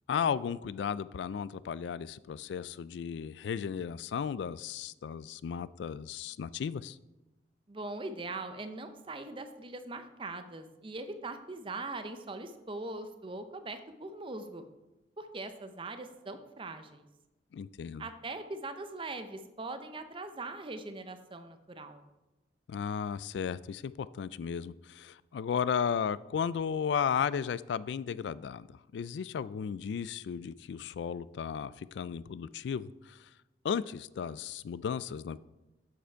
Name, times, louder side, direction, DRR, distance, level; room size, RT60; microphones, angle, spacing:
voice 1, 0.1-7.0 17.5-18.1 22.7-33.2 33.6-35.4, left 7 dB, 75° left, 18 dB, 0.3 m, -34 dB
voice 2, 7.7-14.6 15.2-17.1 18.0-22.0, right 2 dB, 30° right, 9 dB, 0.6 m, -41 dB
7.5 x 6.9 x 4.5 m, 1.0 s
head